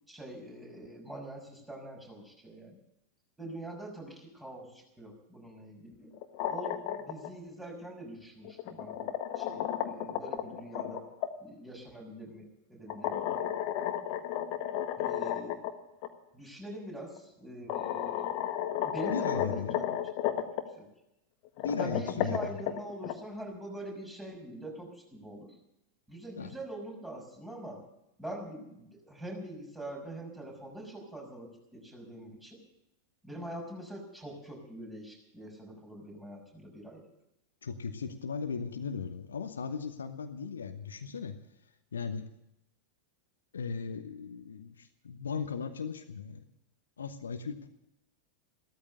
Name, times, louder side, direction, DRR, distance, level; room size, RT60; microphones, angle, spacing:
voice 1, 0.1-2.8 3.4-6.1 6.5-11.0 11.4-13.5 15.0-15.6 16.3-18.2 18.8-19.9 20.4-20.5 20.8-20.9 21.8-25.5 26.1-27.8 28.2-32.6 33.2-37.0, right 1 dB, 10° right, 0 dB, 6.0 m, -44 dB
sound 1, 6.1-7.3 8.4-11.3 12.9-15.7 16.0-16.1 17.2-17.3 17.7-20.6 21.4-23.1, left 11 dB, 45° left, 1.5 m, -33 dB
voice 2, 19.1-20.1 21.6-22.5 26.4-26.5 37.6-41.4 41.9-42.3 43.5-46.4 47.0-47.7, left 5 dB, 70° left, 8 dB, 1.1 m, -37 dB
15.5 x 13.5 x 6.7 m, 0.85 s
figure-of-eight pair, 90°, 0 cm